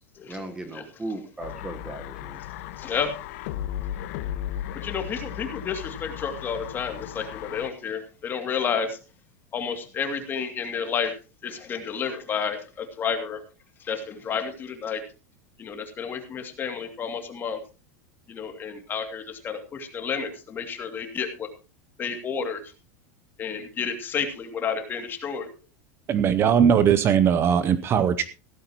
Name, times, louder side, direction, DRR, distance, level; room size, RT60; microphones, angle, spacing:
voice 1, 0.3-2.4, right 2 dB, 10° right, 7 dB, 1.3 m, -37 dB
sound 1, 1.4-7.7, left 12 dB, 65° left, 1.2 m, -35 dB
voice 2, 2.8-3.2 4.7-9.0 9.5-11.1 11.4-13.4 13.8-15.0 15.6-17.6 18.3-21.5 22.0-22.7 23.4-25.5, left 6 dB, 25° left, 6 dB, 2.5 m, -31 dB
voice 3, 26.1-28.2, right 8 dB, 30° right, 13 dB, 0.7 m, -19 dB
16.0 x 13.5 x 3.0 m, 0.31 s
supercardioid pair, 145°, 9 cm